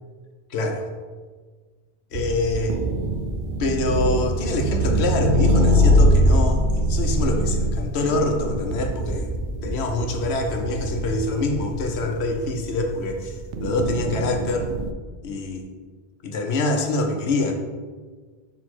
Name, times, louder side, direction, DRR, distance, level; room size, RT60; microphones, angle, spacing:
voice 1, 0.5-0.9 2.1-2.8 3.6-9.3 9.6-14.7 15.2-15.7 16.2-17.5, left 2 dB, 90° left, 3 dB, 1.0 m, -25 dB
sound 1, 2.1-14.9, equal, 60° right, 0.6 m, -23 dB
6.4 x 3.5 x 4.3 m, 1.5 s
omnidirectional pair, 1.1 m